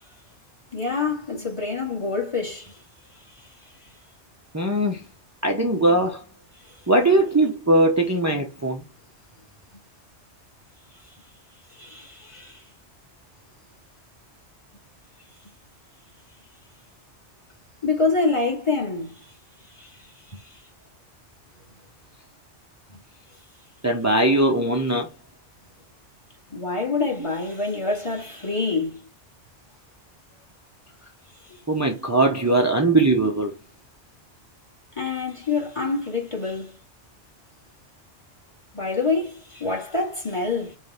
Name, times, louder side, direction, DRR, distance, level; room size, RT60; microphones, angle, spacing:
voice 1, 0.7-2.7 11.8-12.6 17.8-19.1 19.8-19.9 20.3-20.4 26.5-29.0 35.0-36.8 38.7-40.8, left 4 dB, 25° left, 2.2 m, -26 dB
voice 2, 4.5-5.0 5.4-6.2 6.9-8.8 23.8-25.1 27.2-27.3 31.7-33.5, right 2 dB, 15° right, 0.9 m, -20 dB
5.4 x 3.6 x 5.5 m
omnidirectional pair, 1.2 m